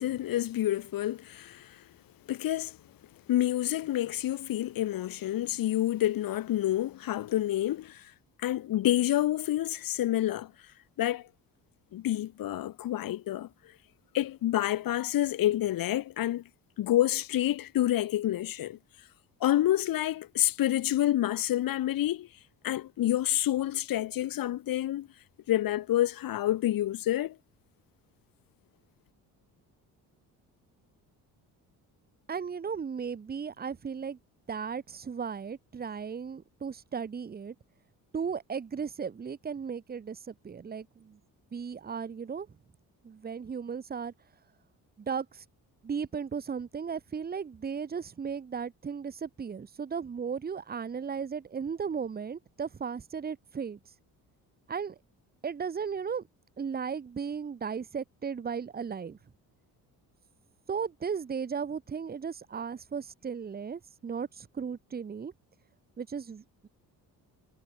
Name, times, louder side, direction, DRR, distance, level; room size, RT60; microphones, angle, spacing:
voice 1, 0.0-1.8 2.3-2.8 3.3-8.0 8.4-10.5 11.0-11.2 11.9-13.5 14.1-16.4 16.8-18.8 19.4-22.3 22.6-25.1 25.5-27.4, left 13 dB, 70° left, 1.8 m, -28 dB
voice 2, 32.3-34.2 34.5-37.5 38.1-41.2 41.5-42.5 43.0-44.1 45.0-45.4 45.8-53.8 54.7-55.0 55.4-56.3 56.6-59.2 60.7-65.3 66.0-66.7, right 6 dB, 25° right, 1.0 m, -36 dB
cardioid pair, 105°, 36 cm